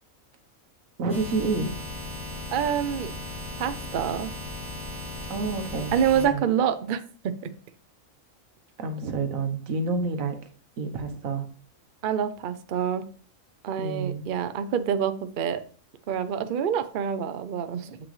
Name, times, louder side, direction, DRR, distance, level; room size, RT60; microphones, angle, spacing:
voice 1, 1.0-1.8 5.3-6.5 8.8-10.4 10.8-11.5 13.8-14.3, right 3 dB, 80° right, 7 dB, 1.4 m, -29 dB
sound 1, 1.1-6.3, left 1 dB, 50° left, 2.2 m, -37 dB
voice 2, 2.5-3.1 3.6-4.3 5.9-7.0 12.0-13.0 13.6-15.6 16.1-18.0, right 8 dB, 55° right, 10 dB, 0.6 m, -26 dB
7.6 x 6.0 x 3.2 m, 0.43 s
omnidirectional pair, 1.4 m